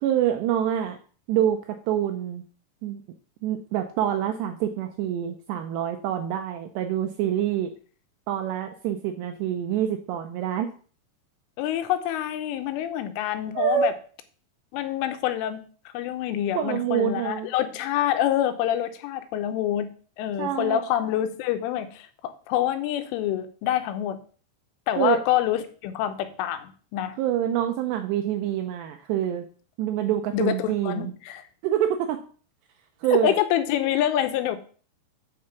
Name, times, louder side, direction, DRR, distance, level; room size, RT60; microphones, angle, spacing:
voice 1, 0.0-1.0 1.3-2.4 2.8-3.0 3.4-7.7 8.3-10.7 13.6-14.0 16.6-17.5 20.4-20.8 25.0-25.2 27.2-29.5 29.8-31.1 31.6-32.2 33.0-33.4, right 10 dB, 80° right, 6 dB, 2.5 m, -26 dB
voice 2, 11.6-13.9 14.7-15.6 15.9-19.9 20.2-24.2 24.9-27.2 30.3-31.4 33.1-34.6, left 11 dB, 85° left, 9 dB, 3.3 m, -26 dB
9.5 x 4.9 x 5.7 m, 0.42 s
omnidirectional pair, 5.6 m